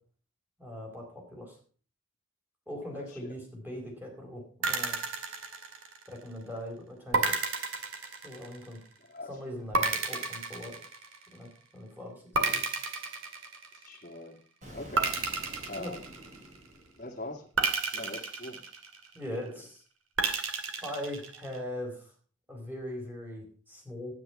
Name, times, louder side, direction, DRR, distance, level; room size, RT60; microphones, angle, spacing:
voice 1, 0.6-1.6 2.7-5.0 6.1-7.3 8.2-8.8 9.2-10.8 11.3-12.6 15.7-15.9 19.1-19.8 20.8-22.1 22.5-24.1, left 1 dB, 10° right, 0 dB, 4.2 m, -40 dB
sound 1, 4.6-6.2 7.1-8.8 9.7-11.5 12.3-14.0 15.0-16.7 17.6-19.3 20.2-21.6, right 4 dB, 75° right, 2.0 m, -31 dB
voice 2, 13.8-14.4 14.7-15.1 15.7-16.1 17.0-17.4 17.9-18.6, left 2 dB, 40° left, -4 dB, 1.7 m, -41 dB
Explosion, 14.6-17.5, equal, 35° right, 3.6 m, -49 dB
10.5 x 9.5 x 5.8 m, 0.42 s
head